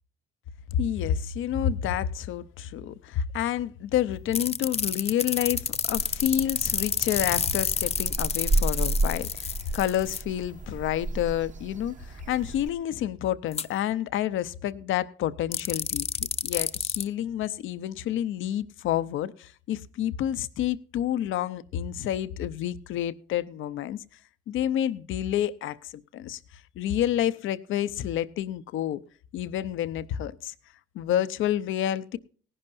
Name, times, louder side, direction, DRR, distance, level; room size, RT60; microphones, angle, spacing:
voice 1, 0.8-16.1 16.4-24.0 24.5-26.4 26.8-29.0 29.3-30.5 30.9-32.2, left 11 dB, 80° left, 0.7 m, -29 dB
sound 1, 4.3-10.2 13.5-13.6 15.5-17.0, left 6 dB, 30° left, 0.6 m, -29 dB
sound 2, 5.4-12.7, right 2 dB, 40° right, 1.0 m, -32 dB
18.5 x 11.0 x 2.6 m
cardioid pair, 90°, 20 cm